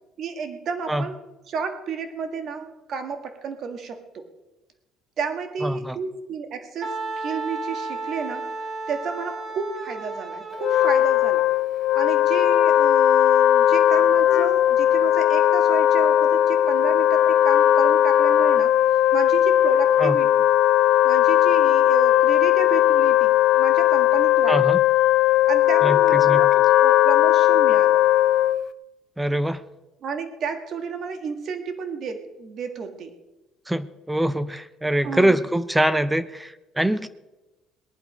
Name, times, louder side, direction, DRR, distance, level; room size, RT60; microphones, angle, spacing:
voice 1, 0.2-1.2 1.5-4.3 5.2-8.5 8.9-11.5 11.9-18.8 19.1-20.3 21.0-24.7 25.5-28.0 30.0-33.1 35.0-35.4, right 5 dB, 45° right, 7 dB, 1.5 m, -32 dB
voice 2, 5.6-6.0 20.0-20.2 24.5-24.8 25.8-26.4 29.2-29.6 33.7-37.1, right 1 dB, 5° right, 14 dB, 0.5 m, -23 dB
Wind instrument woodwind instrument, 6.8-11.4, right 3 dB, 20° right, 1.4 m, -33 dB
Wind instrument woodwind instrument 2, 10.5-28.7, left 12 dB, 55° left, 0.5 m, -18 dB
19.0 x 10.5 x 5.0 m, 1.1 s
cardioid pair, 155°, 0 cm